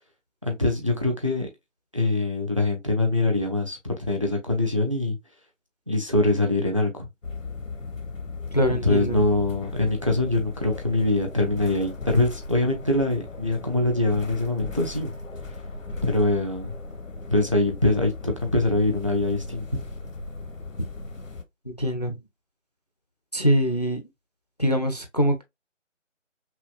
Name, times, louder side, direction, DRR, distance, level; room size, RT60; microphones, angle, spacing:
voice 1, 0.4-1.5 1.9-5.2 5.9-7.1 8.7-15.1 16.0-16.7 17.3-19.7, left 2 dB, 25° right, 0.6 m, -23 dB
sound 1, 7.2-21.4, left 3 dB, 85° left, 1.0 m, -37 dB
voice 2, 8.5-9.3 21.7-22.2 23.3-24.0 24.6-25.4, equal, 35° left, 0.5 m, -23 dB
5.6 x 2.2 x 2.3 m
figure-of-eight pair, 160°, 38 cm